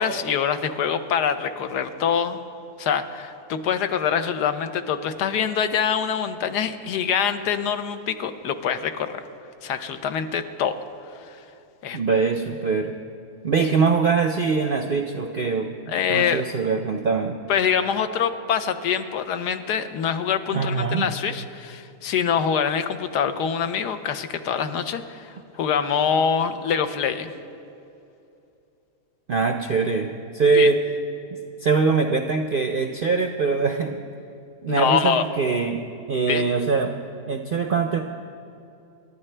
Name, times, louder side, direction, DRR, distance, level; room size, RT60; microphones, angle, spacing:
voice 1, 0.0-2.4 2.8-9.2 9.6-10.7 11.2-11.4 11.8-12.0 15.9-16.4 17.5-27.3 30.5-30.7 34.7-35.2 36.3-36.4, left 7 dB, 85° left, 9 dB, 1.4 m, -25 dB
voice 2, 11.9-12.9 13.4-15.7 16.1-17.4 20.5-21.1 29.3-30.8 31.6-34.0 34.6-35.8 36.1-36.9 37.3-38.0, right 4 dB, 65° right, 5 dB, 0.5 m, -22 dB
27.0 x 11.0 x 3.3 m, 2.7 s
omnidirectional pair, 1.7 m